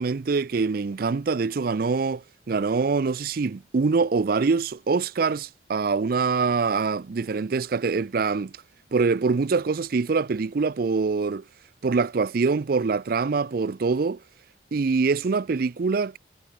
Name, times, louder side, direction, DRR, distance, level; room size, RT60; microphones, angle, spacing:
voice 1, 0.0-8.5 8.9-11.4 11.8-14.2 14.7-16.2, right 4 dB, 50° right, 0.4 m, -24 dB
head